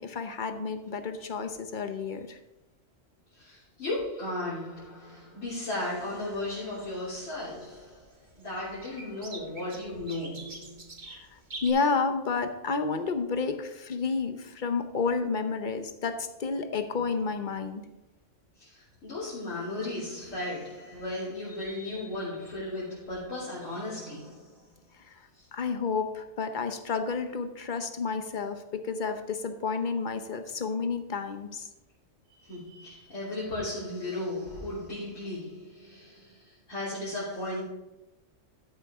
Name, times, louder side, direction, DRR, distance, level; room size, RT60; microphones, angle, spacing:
voice 1, 0.0-2.4 11.1-17.8 25.1-31.7, left 4 dB, 45° left, 8 dB, 0.9 m, -31 dB
voice 2, 3.3-8.0 8.4-10.8 18.6-24.6 25.3-25.4 32.4-37.6, left 2 dB, 85° left, -10 dB, 3.8 m, -36 dB
sound 1, 5.9-11.7, right 2 dB, 40° right, 1.7 m, -47 dB
13.0 x 7.3 x 3.6 m, 1.0 s
omnidirectional pair, 1.3 m